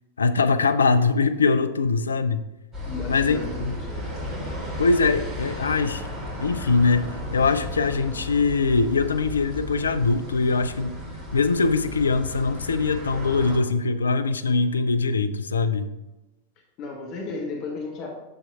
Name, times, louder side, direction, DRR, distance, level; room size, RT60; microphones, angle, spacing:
voice 1, 0.2-2.5 3.1-3.7 4.8-6.0 6.4-11.0 11.3-15.9, left 4 dB, 75° left, 11 dB, 0.4 m, -22 dB
sound 1, 2.7-13.6, left 1 dB, 20° right, 2.7 m, -34 dB
voice 2, 2.8-4.1 16.8-18.1, left 3 dB, 40° left, 0 dB, 1.2 m, -34 dB
8.6 x 6.8 x 2.4 m, 1.0 s
figure-of-eight pair, 90°, 0 cm